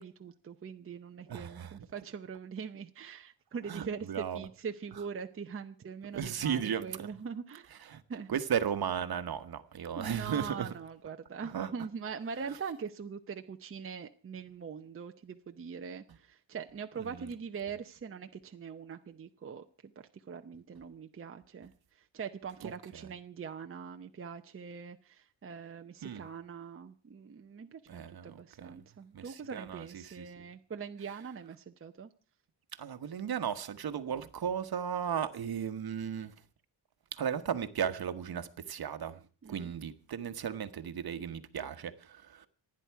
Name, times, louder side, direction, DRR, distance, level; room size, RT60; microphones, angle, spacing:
voice 1, 0.0-7.7 8.1-8.4 10.0-32.1 39.4-39.7, right 6 dB, 30° right, 0.8 m, -42 dB
voice 2, 1.3-1.8 3.7-4.5 6.1-7.1 7.8-8.0 8.3-10.7 11.4-11.7 17.0-17.2 22.6-22.7 26.0-26.2 27.9-28.7 29.1-30.5 32.7-36.3 37.1-39.2 39.5-42.5, right 8 dB, 50° right, 1.3 m, -35 dB
27.0 x 9.9 x 4.7 m
cardioid pair, 125°, 46 cm